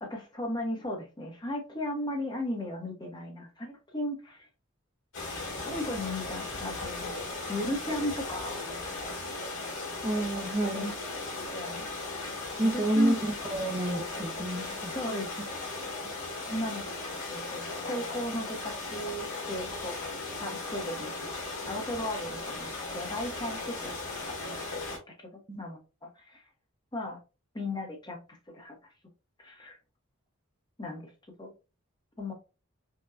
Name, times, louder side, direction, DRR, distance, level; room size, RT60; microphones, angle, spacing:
voice 1, 0.0-4.5 5.6-7.1 7.5-8.6 10.7-10.9 11.4-11.9 12.7-13.2 14.9-15.5 16.5-16.9 17.3-20.0 20.4-25.3 25.6-26.4 26.9-27.2 27.5-28.8 29.4-29.8 30.8-31.1 31.4-31.5 32.2-32.3, left 1 dB, 20° left, 2 dB, 0.8 m, -36 dB
sound 1, 5.1-25.0, left 3 dB, 90° left, 1.9 m, -37 dB
voice 2, 10.0-10.9 12.6-15.2 25.5-25.6, right 1 dB, 25° right, 2 dB, 0.6 m, -29 dB
5.4 x 2.2 x 2.4 m, 0.31 s
head